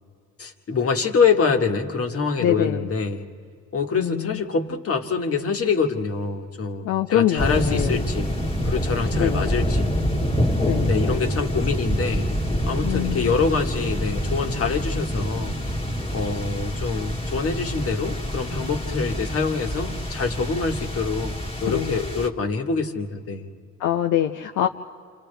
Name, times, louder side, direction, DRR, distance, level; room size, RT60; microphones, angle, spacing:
voice 1, 0.4-3.3 3.7-8.4 8.7-9.9 10.9-12.3 12.7-15.6 16.1-23.5, left 5 dB, 50° left, 4 dB, 1.8 m, -25 dB
voice 2, 2.4-2.9 4.0-4.4 6.8-8.0 9.2-9.4 10.6-11.0 12.8-13.3 21.7-22.0 23.8-24.7, left 11 dB, 80° left, 4 dB, 0.7 m, -24 dB
sound 1, 7.4-22.3, equal, 20° left, 1.7 m, -26 dB
28.0 x 28.0 x 3.4 m, 2.2 s
cardioid pair, 90°, 30 cm